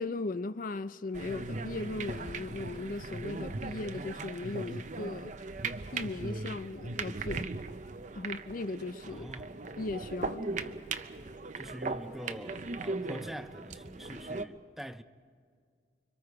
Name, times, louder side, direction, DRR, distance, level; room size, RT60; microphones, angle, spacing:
voice 1, 0.0-5.3 5.9-7.5 8.1-9.3 9.8-10.5, left 3 dB, 50° left, 0.5 m, -37 dB
sound 1, 1.1-14.4, right 3 dB, 45° right, 0.7 m, -38 dB
voice 2, 9.1-9.6 11.5-15.0, equal, ahead, 0.5 m, -44 dB
30.0 x 24.0 x 4.7 m
head